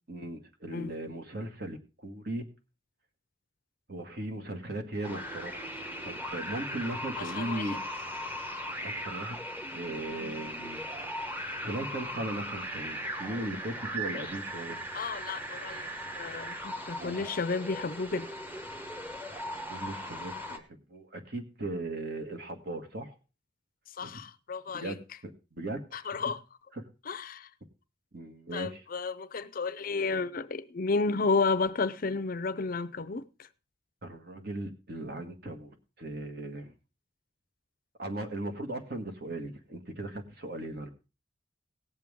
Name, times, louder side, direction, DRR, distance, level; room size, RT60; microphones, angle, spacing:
voice 1, 0.1-2.5 3.9-5.7 6.0-7.8 8.8-9.4 9.7-11.2 11.6-14.8 16.9-17.2 19.7-23.2 24.0-24.2 24.7-25.0 25.5-26.1 26.7-26.9 28.1-28.8 34.0-36.7 38.0-40.9, right 1 dB, 55° right, 1.8 m, -38 dB
sound 1, 5.0-20.6, equal, 10° right, 1.1 m, -38 dB
voice 2, 7.2-7.7 14.9-15.9 16.1-18.3 24.0-24.9 25.9-26.4 27.1-27.5 28.5-33.5, left 4 dB, 45° left, 0.5 m, -32 dB
18.0 x 7.6 x 3.6 m
head